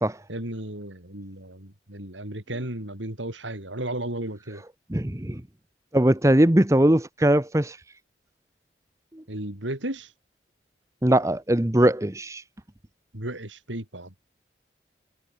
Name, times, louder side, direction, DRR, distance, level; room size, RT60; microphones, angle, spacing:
voice 1, 0.3-4.6 9.3-10.1 13.1-14.1, right 1 dB, 90° right, 5.3 m, -34 dB
voice 2, 4.9-5.4 5.9-7.8 11.0-12.4, right 1 dB, 15° right, 0.9 m, -20 dB
head